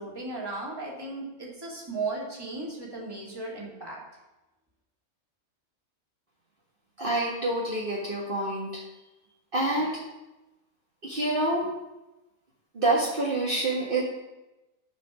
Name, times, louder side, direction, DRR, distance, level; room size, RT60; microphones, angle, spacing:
voice 1, 0.0-4.0, right 3 dB, 15° right, -4 dB, 2.4 m, -36 dB
voice 2, 7.0-8.7 9.5-10.0 11.0-11.7 12.7-14.0, right 2 dB, 40° right, -6 dB, 1.8 m, -27 dB
11.0 x 5.1 x 6.2 m, 1.0 s
omnidirectional pair, 1.4 m